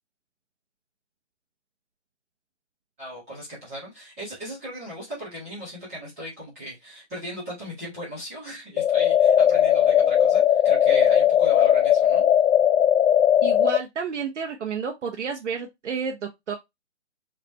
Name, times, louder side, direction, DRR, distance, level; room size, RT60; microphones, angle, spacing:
voice 1, 3.0-12.2, equal, 10° right, 1.2 m, -38 dB
sound 1, 8.8-13.8, left 9 dB, 90° left, 0.5 m, -18 dB
voice 2, 13.4-16.5, right 6 dB, 90° right, 0.9 m, -31 dB
4.0 x 3.3 x 3.2 m
hypercardioid pair, 180°, 35 cm